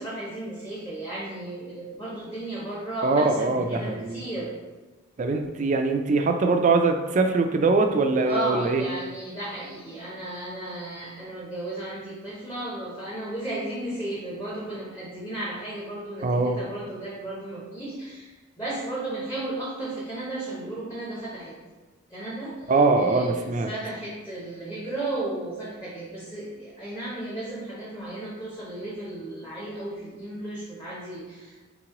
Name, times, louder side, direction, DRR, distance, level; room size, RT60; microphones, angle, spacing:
voice 1, 0.0-4.5 8.2-21.6 22.1-22.7 23.0-31.7, right 2 dB, 20° left, -7 dB, 0.7 m, -34 dB
voice 2, 3.0-4.2 5.2-8.8 16.2-16.6 22.7-23.7, right 3 dB, 40° right, 5 dB, 0.3 m, -22 dB
3.7 x 3.0 x 3.6 m, 1.2 s
head